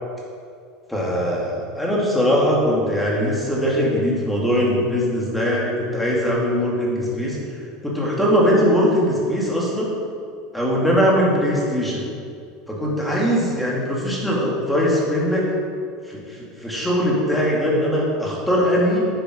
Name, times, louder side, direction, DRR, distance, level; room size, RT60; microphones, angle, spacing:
voice 1, 0.9-7.4 7.8-9.9 10.5-12.0 12.7-15.4 16.1-19.1, equal, 5° left, -4 dB, 2.3 m, -21 dB
9.9 x 7.0 x 6.3 m, 2.3 s
supercardioid pair, 150°, 0 cm